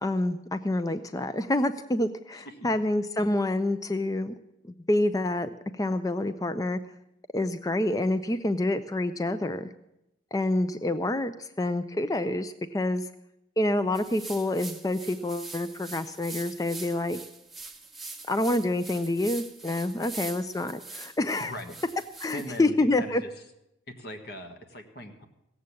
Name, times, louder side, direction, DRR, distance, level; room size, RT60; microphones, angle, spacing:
voice 1, 0.0-4.4 4.6-6.8 7.3-9.7 10.3-13.1 13.6-17.2 18.3-21.5 22.2-23.2, left 1 dB, 15° left, 11 dB, 0.4 m, -27 dB
sound 1, 13.9-22.6, right 3 dB, ahead, 0.8 m, -43 dB
voice 2, 21.4-21.7 22.3-23.3 23.9-25.2, left 1 dB, 50° left, 5 dB, 1.5 m, -40 dB
16.5 x 7.6 x 8.3 m, 0.85 s
head